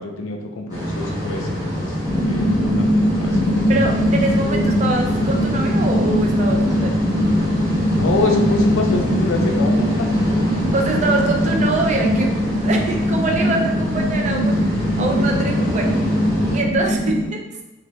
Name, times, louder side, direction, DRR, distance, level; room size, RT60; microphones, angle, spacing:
voice 1, 0.0-2.0 2.2-2.9 3.2-3.7 7.9-10.1, left 3 dB, 85° left, 3 dB, 0.5 m, -25 dB
sound 1, 0.7-16.6, equal, 20° right, 1.1 m, -25 dB
sound 2, 2.0-17.3, equal, 20° left, 0.8 m, -21 dB
voice 2, 3.7-7.1 10.7-14.6 15.0-15.9 16.5-17.4, right 3 dB, 35° right, 1 dB, 0.4 m, -24 dB
2.7 x 2.6 x 3.0 m, 1.0 s
head